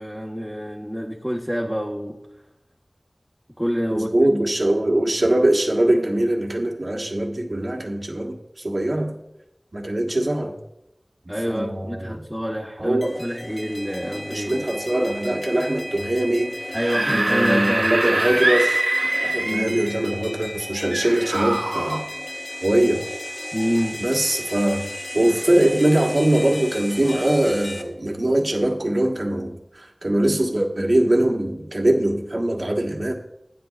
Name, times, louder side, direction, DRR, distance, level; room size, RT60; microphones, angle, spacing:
voice 1, 0.0-2.2 3.6-4.3 11.3-14.7 16.7-18.0 19.4-19.8 23.5-24.0, equal, 5° right, -3 dB, 1.3 m, -27 dB
voice 2, 3.9-9.2 9.7-10.5 11.5-12.2 12.8-13.1 14.0-17.8 18.0-22.1 22.6-23.0 24.0-33.1, right 1 dB, 60° right, 1 dB, 1.6 m, -22 dB
sound 1, 13.0-27.8, left 1 dB, 40° left, 1.8 m, -35 dB
Screaming / Screech, 16.6-20.0 20.9-22.0, right 1 dB, 80° right, 2.0 m, -23 dB
15.5 x 9.3 x 2.5 m, 0.87 s
wide cardioid pair, 50°, 0 cm